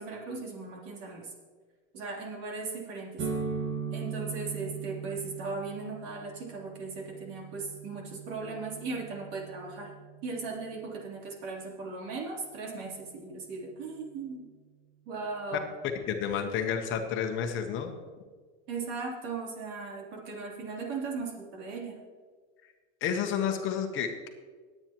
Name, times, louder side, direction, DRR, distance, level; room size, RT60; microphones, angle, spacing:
voice 1, 0.0-1.3 1.9-3.3 3.9-9.9 10.2-14.5 15.0-15.6 18.7-22.0, right 4 dB, 60° right, -1 dB, 3.5 m, -38 dB
sound 1, 3.2-10.8, right 5 dB, 30° right, 1.7 m, -39 dB
voice 2, 16.1-18.0 23.0-24.3, left 7 dB, 35° left, 4 dB, 1.0 m, -30 dB
20.5 x 8.9 x 3.0 m, 1.5 s
supercardioid pair, 160°, 36 cm